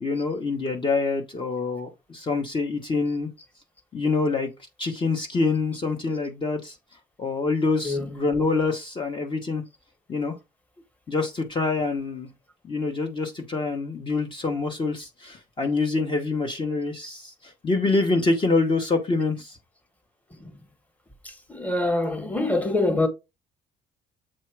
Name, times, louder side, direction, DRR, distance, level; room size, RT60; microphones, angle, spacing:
voice 1, 0.0-3.3 3.9-4.5 4.8-6.8 7.2-9.6 10.1-10.4 11.1-12.3 12.6-19.6, left 3 dB, 30° left, 1.0 m, -26 dB
voice 2, 21.2-23.1, left 2 dB, 10° left, 1.3 m, -25 dB
7.6 x 2.7 x 4.6 m
cardioid pair, 110°, 17 cm